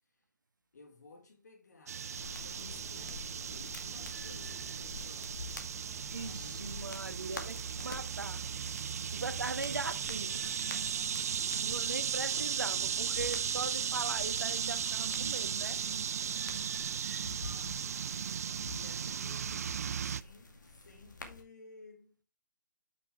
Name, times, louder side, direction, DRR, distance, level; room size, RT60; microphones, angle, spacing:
voice 1, 0.7-5.5 6.1-7.1 8.5-9.1 10.4-11.6 15.6-16.9 17.4-18.1 18.7-22.2, left 3 dB, 65° left, 3.3 m, -56 dB
sound 1, 1.9-20.2, right 8 dB, 55° right, 0.4 m, -36 dB
sound 2, 2.1-21.4, left 3 dB, 85° left, 2.1 m, -49 dB
sound 3, 2.5-17.0, equal, ahead, 0.5 m, -61 dB
voice 2, 6.1-7.6 7.8-8.6 9.1-10.5 11.5-15.8, right 3 dB, 85° right, 1.5 m, -39 dB
8.5 x 6.1 x 3.5 m
figure-of-eight pair, 145°, 10 cm